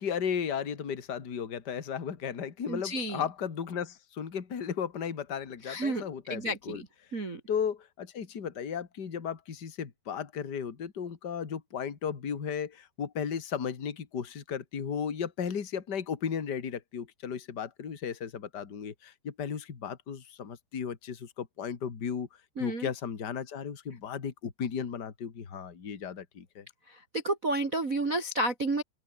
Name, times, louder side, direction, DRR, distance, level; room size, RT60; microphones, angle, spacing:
voice 1, 0.0-6.8 7.5-22.3 22.6-26.6, left 7 dB, 40° left, 1.6 m, -35 dB
voice 2, 2.7-3.2 5.6-6.0 6.3-6.9 7.1-7.4 22.6-22.9 26.9-28.8, right 2 dB, 65° right, 0.8 m, -31 dB
open air
omnidirectional pair, 5.4 m